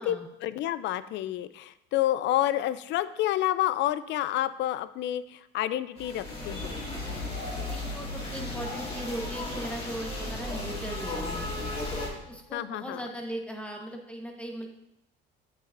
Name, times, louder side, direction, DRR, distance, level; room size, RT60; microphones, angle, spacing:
voice 1, 0.0-6.8 12.5-13.0, left 13 dB, 65° left, 15 dB, 0.4 m, -29 dB
sound 1, 6.0-12.1, left 2 dB, 30° left, 2.2 m, -35 dB
voice 2, 7.7-11.7 12.3-14.7, equal, 5° left, 2 dB, 1.2 m, -38 dB
8.2 x 6.8 x 2.6 m, 0.84 s
cardioid pair, 105°, 20 cm